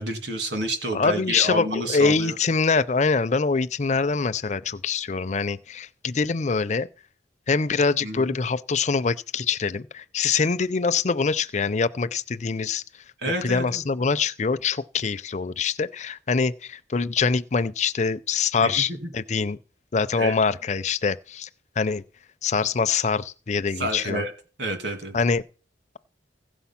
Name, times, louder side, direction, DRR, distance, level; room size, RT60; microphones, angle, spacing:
voice 1, 0.0-2.4 8.0-8.3 13.2-13.8 18.6-19.1 20.2-20.4 23.8-24.3 24.6-25.2, right 1 dB, 65° right, 2.3 m, -29 dB
voice 2, 0.9-6.9 7.5-12.8 13.4-19.6 19.9-21.5 21.8-22.0 22.4-24.2 25.1-25.4, left 5 dB, 40° left, 0.5 m, -24 dB
15.5 x 7.0 x 5.8 m
head